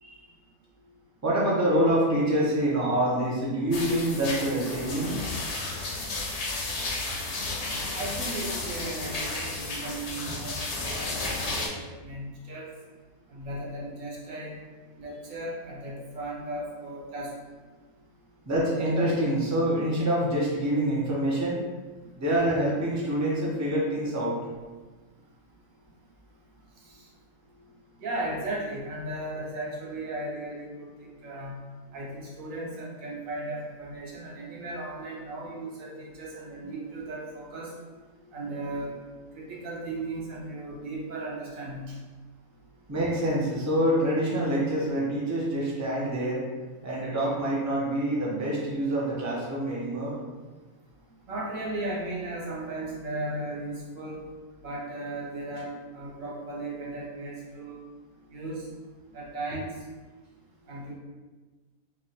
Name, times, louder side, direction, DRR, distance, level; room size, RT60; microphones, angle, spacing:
voice 1, 1.2-5.3 18.5-21.6 22.2-24.4 38.1-38.2 42.9-46.4 46.8-50.2, right 1 dB, 15° right, -5 dB, 0.6 m, -26 dB
sound 1, 3.7-11.7, left 2 dB, 80° left, 0.3 m, -33 dB
voice 2, 7.9-12.7 13.3-14.6 15.0-17.3 26.9-27.1 28.0-31.6 31.9-37.7 38.3-38.9 39.3-42.0 51.3-54.2 54.6-57.8 58.3-58.7 59.1-59.8 60.7-60.9, right 2 dB, 75° right, -3 dB, 1.3 m, -36 dB
4.7 x 2.4 x 2.8 m, 1.3 s
omnidirectional pair, 1.4 m